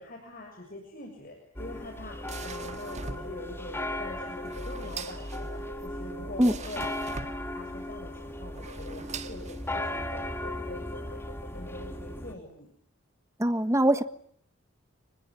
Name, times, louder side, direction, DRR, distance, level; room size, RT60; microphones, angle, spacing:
voice 1, 0.0-10.0 10.4-11.2 11.5-12.7, left 1 dB, 40° left, 2 dB, 6.8 m, -44 dB
sound 1, 1.6-12.3, left 1 dB, 10° left, 2.7 m, -37 dB
sound 2, 1.7-10.0, right 4 dB, 35° right, 1.7 m, -43 dB
sound 3, 2.1-6.9 7.2-7.3 7.9-12.7, left 2 dB, 75° left, 4.5 m, -48 dB
voice 2, 13.4-14.0, right 1 dB, 15° right, 12 dB, 1.4 m, -22 dB
28.5 x 21.0 x 9.8 m, 0.65 s
head